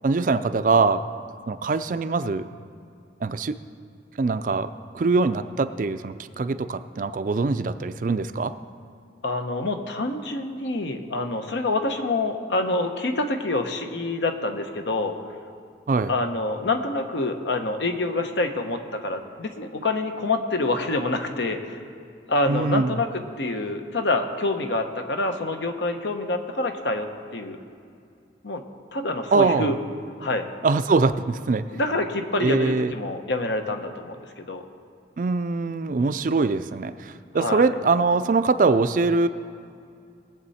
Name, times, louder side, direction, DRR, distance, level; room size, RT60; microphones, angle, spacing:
voice 1, 0.0-1.0 1.5-2.5 3.2-3.6 4.2-4.7 4.9-8.5 15.9-16.1 22.5-22.9 29.3-29.7 30.6-31.7 32.4-32.9 35.2-39.3, right 3 dB, 45° right, 12 dB, 0.4 m, -23 dB
voice 2, 9.2-15.1 16.1-21.8 22.3-27.6 28.4-28.6 28.9-29.8 30.2-30.4 31.7-34.6 37.3-37.7, left 2 dB, 75° left, 6 dB, 0.9 m, -26 dB
20.0 x 7.5 x 4.2 m, 2.4 s
head